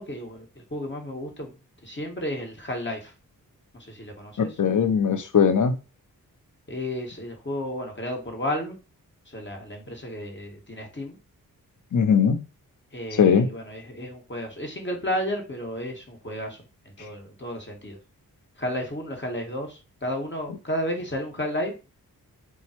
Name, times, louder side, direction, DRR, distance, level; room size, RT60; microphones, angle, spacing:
voice 1, 0.0-3.1 3.7-4.6 6.7-8.7 9.3-11.1 12.9-16.6 16.8-18.0 18.6-21.7, left 1 dB, 30° left, 2 dB, 1.7 m, -32 dB
voice 2, 4.4-5.8 11.9-12.4 13.2-13.5, left 7 dB, 55° left, 8 dB, 0.8 m, -20 dB
4.1 x 2.4 x 4.4 m, 0.31 s
cardioid pair, 50°, 37 cm